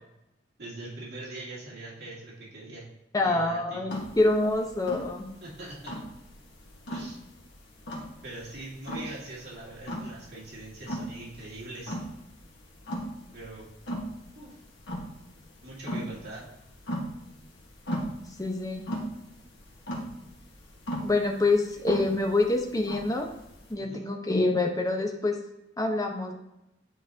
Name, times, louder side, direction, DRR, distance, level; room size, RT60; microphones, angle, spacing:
voice 1, 0.6-2.9 3.2-3.8 5.4-6.0 6.9-7.2 8.2-11.9 13.3-13.7 14.4-14.5 15.6-16.4 23.8-24.1, right 2 dB, 60° right, -6 dB, 2.1 m, -42 dB
voice 2, 3.1-5.3 18.4-18.9 21.0-23.3 23.7-25.4 25.8-26.3, left 2 dB, 20° left, 2 dB, 0.8 m, -26 dB
sound 1, 3.9-23.7, equal, 70° left, 1.4 m, -37 dB
9.7 x 3.9 x 2.8 m, 0.86 s
head